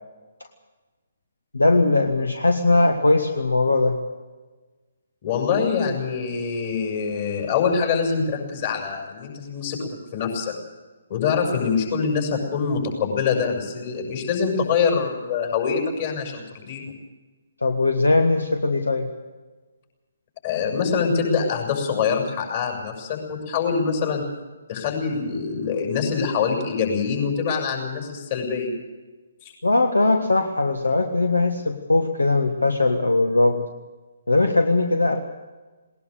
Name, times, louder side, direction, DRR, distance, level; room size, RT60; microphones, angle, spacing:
voice 1, 1.5-4.0 17.6-19.1 29.6-33.6 34.3-35.2, left 2 dB, 70° left, 6 dB, 1.6 m, -20 dB
voice 2, 5.2-10.5 11.1-16.8 20.4-24.2 24.7-28.7 29.4-29.5, left 5 dB, 35° left, 1 dB, 6.5 m, -24 dB
20.0 x 19.5 x 6.7 m, 1.3 s
figure-of-eight pair, 135°, 0 cm